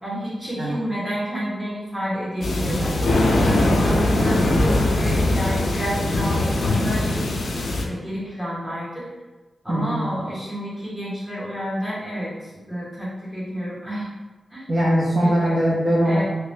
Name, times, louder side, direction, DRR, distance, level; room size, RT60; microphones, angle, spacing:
voice 1, 0.0-2.9 3.3-9.1 9.6-14.1 14.5-14.7 15.2-15.6 16.0-16.2, equal, 10° right, -8 dB, 1.1 m, -30 dB
sound 1, 2.4-7.8, left 2 dB, 60° left, 0.5 m, -21 dB
voice 2, 3.9-4.3 9.7-10.0 14.7-16.2, equal, 40° right, -6 dB, 0.6 m, -21 dB
3.0 x 2.8 x 3.3 m, 1.2 s
wide cardioid pair, 170°, 0 cm